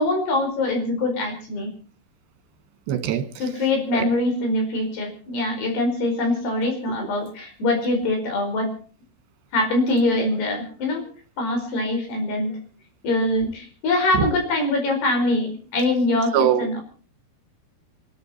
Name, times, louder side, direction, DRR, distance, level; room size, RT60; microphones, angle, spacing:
voice 1, 0.0-1.7 3.4-8.7 9.5-11.0 11.4-12.6 13.0-16.8, left 2 dB, 75° left, 3 dB, 6.9 m, -23 dB
voice 2, 2.9-3.2 3.9-4.1 14.2-14.3 16.3-16.7, right 10 dB, 80° right, 9 dB, 3.9 m, -21 dB
27.5 x 12.0 x 4.3 m, 0.42 s
omnidirectional pair, 4.8 m